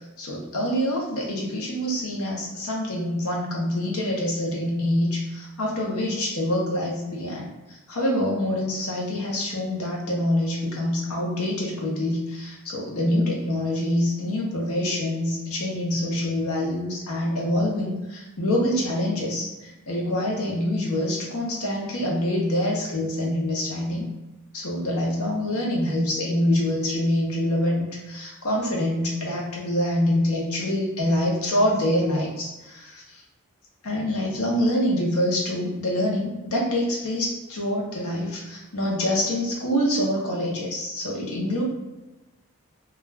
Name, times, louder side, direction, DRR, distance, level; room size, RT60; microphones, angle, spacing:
voice 1, 0.2-7.5 7.9-24.1 24.5-33.2 33.8-41.6, left 1 dB, 80° left, -2 dB, 0.8 m, -25 dB
2.4 x 2.3 x 3.2 m, 1.1 s
head